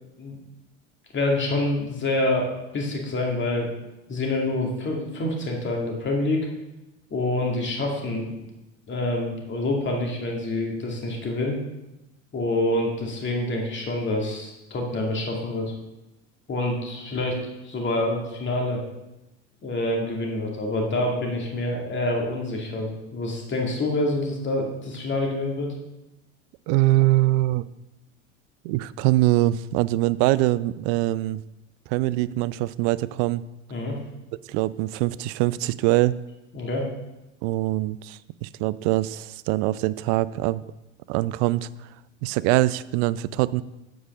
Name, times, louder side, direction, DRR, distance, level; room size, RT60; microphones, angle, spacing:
voice 1, 1.1-3.7 4.1-6.5 7.1-8.4 8.9-11.6 12.3-15.7 16.5-18.8 19.6-25.7 33.7-34.0 36.5-36.9, left 1 dB, 30° left, 0 dB, 2.4 m, -27 dB
voice 2, 26.7-27.7 28.6-31.4 31.9-33.4 34.5-36.2 37.4-40.6 41.1-41.7 42.2-43.6, right 17 dB, 60° right, 17 dB, 0.5 m, -23 dB
8.2 x 4.8 x 6.2 m, 0.97 s
hypercardioid pair, 95°, 37 cm